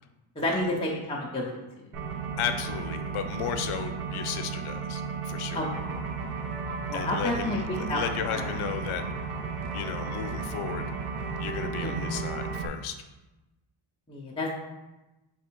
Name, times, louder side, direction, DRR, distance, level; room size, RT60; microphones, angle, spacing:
voice 1, 0.4-1.5 5.5-5.9 6.9-8.0 8.3-8.5 11.8-12.1 14.1-14.5, left 1 dB, 15° left, -4 dB, 0.3 m, -30 dB
sound 1, 1.9-12.7, right 5 dB, 80° right, 0.7 m, -34 dB
voice 2, 2.4-5.6 6.9-9.0 9.7-10.8 11.4-13.0, left 8 dB, 75° left, 8 dB, 0.6 m, -34 dB
3.5 x 3.5 x 4.3 m, 1.0 s
wide cardioid pair, 175°, 50 cm